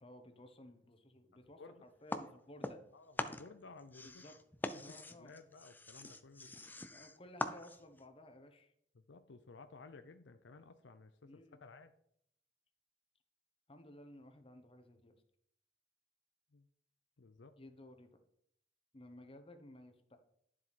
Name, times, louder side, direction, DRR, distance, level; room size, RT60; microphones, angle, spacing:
voice 1, 0.0-2.8 4.0-4.4 4.8-5.3 6.9-8.7 11.2-11.6 13.7-15.2 17.6-18.2 18.9-20.2, left 1 dB, 30° left, 6 dB, 1.1 m, -56 dB
sound 1, 2.1-2.9 3.2-8.0, left 2 dB, 10° left, 0.5 m, -43 dB
voice 2, 2.9-4.2 4.6-6.5 8.9-11.9 16.5-16.7 17.2-17.5, left 3 dB, 70° left, 9 dB, 0.6 m, -56 dB
11.5 x 7.5 x 4.2 m, 0.71 s
head